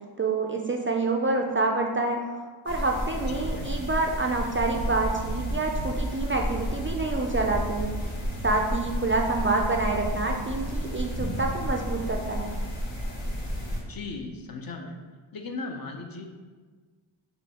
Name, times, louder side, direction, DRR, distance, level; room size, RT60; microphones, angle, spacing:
voice 1, 0.2-2.2 2.6-7.9 8.4-12.5, right 3 dB, 30° right, 1 dB, 0.4 m, -27 dB
sound 1, 2.7-13.8, equal, 70° left, 1.1 m, -32 dB
voice 2, 3.3-3.7 13.9-15.0 15.3-16.3, left 3 dB, 45° left, 3 dB, 0.6 m, -37 dB
sound 2, 4.7-12.2, right 2 dB, 85° right, 0.6 m, -40 dB
5.4 x 2.3 x 2.8 m, 1.4 s
cardioid pair, 40°, 48 cm